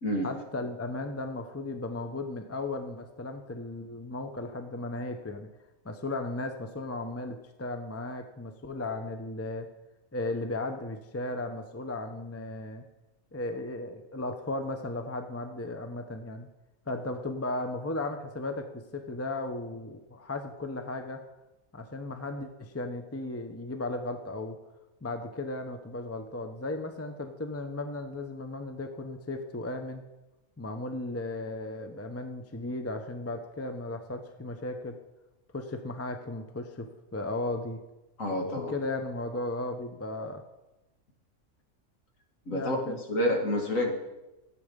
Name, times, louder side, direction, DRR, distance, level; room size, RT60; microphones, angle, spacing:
voice 1, 0.2-5.5 5.8-9.7 10.1-12.8 13.3-16.5 16.9-21.2 21.7-24.6 25.0-30.0 30.6-35.0 35.5-37.8 38.5-40.4 42.5-43.0, left 2 dB, 15° left, 6 dB, 0.7 m, -35 dB
voice 2, 38.2-38.7 42.5-44.0, left 1 dB, 60° left, 1 dB, 2.3 m, -28 dB
13.5 x 8.5 x 5.3 m, 0.99 s
omnidirectional pair, 1.5 m